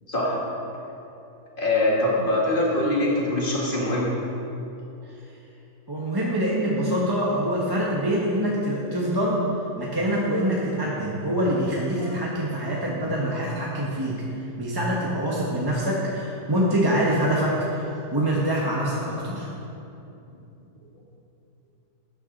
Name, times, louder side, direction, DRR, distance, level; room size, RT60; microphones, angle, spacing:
voice 1, 0.1-0.4 1.6-4.1 12.0-12.1, left 1 dB, 30° left, -4 dB, 2.1 m, -23 dB
voice 2, 5.9-9.4 9.8-14.2 14.6-19.5, right 1 dB, 15° right, -5 dB, 1.0 m, -25 dB
12.0 x 8.9 x 4.1 m, 2.9 s
omnidirectional pair, 1.7 m